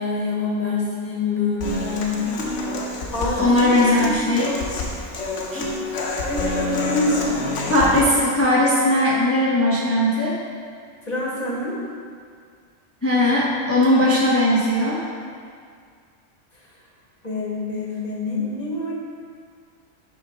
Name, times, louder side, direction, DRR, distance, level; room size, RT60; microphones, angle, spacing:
voice 1, 0.0-2.2 3.1-4.1 6.2-7.5 11.1-11.8 17.2-19.0, left 3 dB, 35° left, -4 dB, 1.1 m, -26 dB
Human voice / Acoustic guitar, 1.6-8.0, left 2 dB, 90° left, 1.1 m, -28 dB
voice 2, 3.4-4.6 5.5-5.7 7.1-7.2 7.7-10.4 13.0-15.0, left 1 dB, 15° left, -5 dB, 0.5 m, -19 dB
6.2 x 3.8 x 4.9 m, 2.1 s
omnidirectional pair, 1.2 m